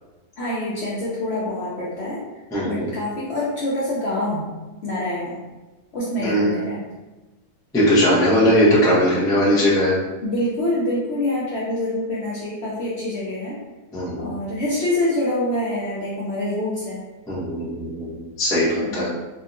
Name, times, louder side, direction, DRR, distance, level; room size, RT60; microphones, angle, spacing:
voice 1, 0.4-2.2 2.6-5.4 5.9-6.9 8.4-8.6 10.2-13.6 14.2-17.0 18.8-19.1, left 1 dB, 60° left, -7 dB, 0.7 m, -26 dB
voice 2, 2.5-2.9 6.2-6.5 7.7-10.0 13.9-14.3 17.3-19.1, equal, 5° left, -8 dB, 0.4 m, -19 dB
3.5 x 2.1 x 2.5 m, 1.1 s
omnidirectional pair, 1.6 m